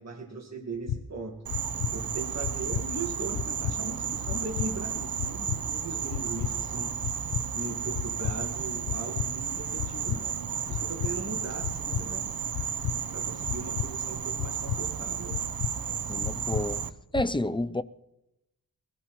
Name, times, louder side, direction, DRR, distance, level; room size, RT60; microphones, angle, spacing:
voice 1, 0.0-1.5 1.9-7.2 7.5-10.4 10.6-12.3 13.1-15.4, right 3 dB, 45° right, 1.7 m, -39 dB
sound 1, 0.8-1.0 1.5-1.9 2.4-2.8 3.3-3.8 4.3-4.7 5.2-5.6 6.1-6.5 7.0-7.4 7.9-8.4 8.9-9.3 9.8-10.2 10.7-11.1 11.6-12.0 12.5-13.0 13.5-13.9 14.4-14.8 15.3-15.7 16.2-16.6 17.1-17.3, left 9 dB, 85° left, 0.6 m, -31 dB
Insect, 1.5-16.9, right 7 dB, 60° right, 0.8 m, -33 dB
voice 2, 16.1-16.8 17.1-17.8, left 1 dB, 15° left, 0.4 m, -29 dB
22.5 x 15.5 x 3.1 m
wide cardioid pair, 90°, 38 cm